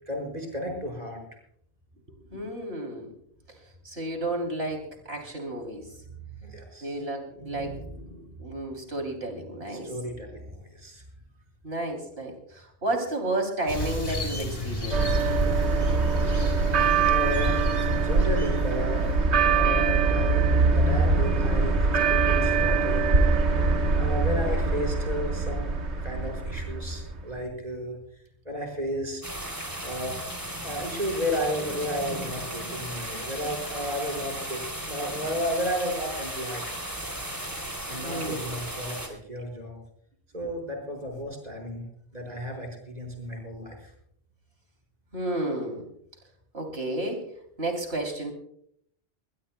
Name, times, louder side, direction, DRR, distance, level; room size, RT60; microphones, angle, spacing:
voice 1, 0.1-1.2 6.3-7.0 7.4-8.4 9.7-11.0 17.1-19.1 19.5-23.1 23.4-23.6 23.9-25.7 26.0-28.0 28.5-29.2 29.8-30.2 30.6-36.6 37.9-39.8 40.3-41.9 42.1-43.9, equal, 40° right, 1 dB, 5.3 m, -33 dB
voice 2, 2.3-3.1 3.8-5.9 6.8-7.8 8.4-9.9 11.6-15.2 38.0-38.4 40.4-40.5 45.1-45.8 46.5-47.3 47.6-48.3, right 2 dB, 65° right, 2 dB, 3.4 m, -32 dB
sound 1, 13.7-19.4, left 2 dB, 60° left, 4.0 m, -34 dB
sound 2, 14.9-27.3, right 4 dB, 85° right, 1.6 m, -23 dB
sound 3, 29.2-39.1, right 1 dB, 20° right, 3.0 m, -35 dB
21.5 x 21.0 x 2.2 m, 0.69 s
omnidirectional pair, 1.1 m